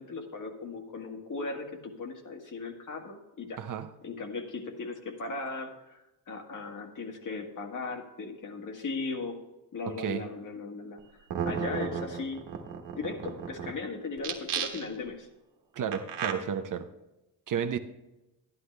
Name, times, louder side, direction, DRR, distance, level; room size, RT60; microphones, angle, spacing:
voice 1, 0.0-3.6 4.0-9.4 9.7-11.0 11.4-12.5 12.9-15.3, left 3 dB, 50° left, 1.8 m, -37 dB
voice 2, 3.6-3.9 9.9-10.3 15.7-16.9 17.5-17.8, right 7 dB, 55° right, 0.8 m, -32 dB
sound 1, 11.0-11.1 11.3-13.7 14.2-15.1 15.9-16.3, right 7 dB, 85° right, 1.4 m, -33 dB
11.5 x 11.0 x 3.3 m
cardioid pair, 125°, 39 cm